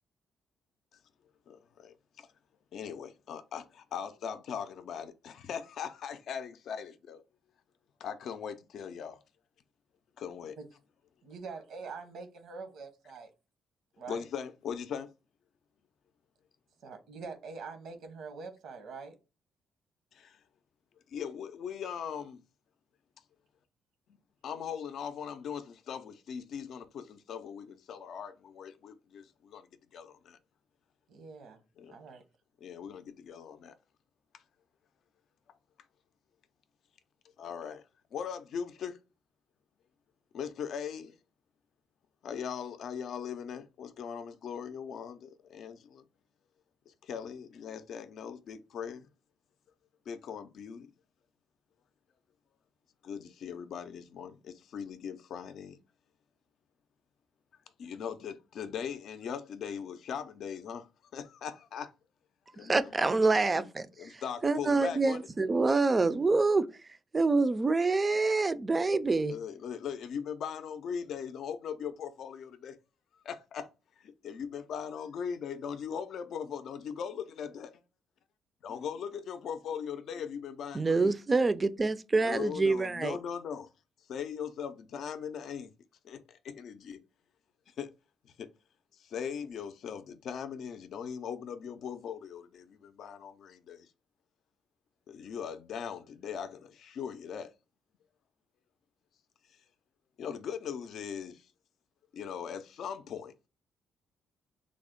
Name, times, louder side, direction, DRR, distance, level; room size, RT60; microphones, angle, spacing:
voice 1, 2.7-7.2 8.0-9.2 10.2-10.5 14.1-15.1 21.1-22.4 24.4-29.6 29.9-30.4 31.8-32.0 32.6-33.7 37.4-37.8 38.1-39.0 40.3-41.1 42.2-46.0 47.1-49.0 50.1-50.9 53.0-55.8 57.8-60.8 61.1-61.9 62.6-63.0 63.6-63.7 64.0-65.2 69.1-72.7 73.3-73.7 74.2-77.7 78.6-81.1 82.2-83.7 84.1-85.7 86.1-86.2 86.4-87.0 87.8-87.9 89.1-93.8 95.1-97.5 100.2-101.3 102.1-103.3, left 7 dB, 70° left, 0.4 m, -39 dB
voice 2, 11.2-13.3 14.0-14.2 16.8-19.2 31.1-31.6 31.9-32.2, right 4 dB, 75° right, 0.8 m, -44 dB
voice 3, 62.7-63.6 64.4-66.7 67.1-69.3 80.7-83.2, right 3 dB, 25° right, 0.3 m, -26 dB
3.4 x 2.1 x 3.6 m
cardioid pair, 90°, 0 cm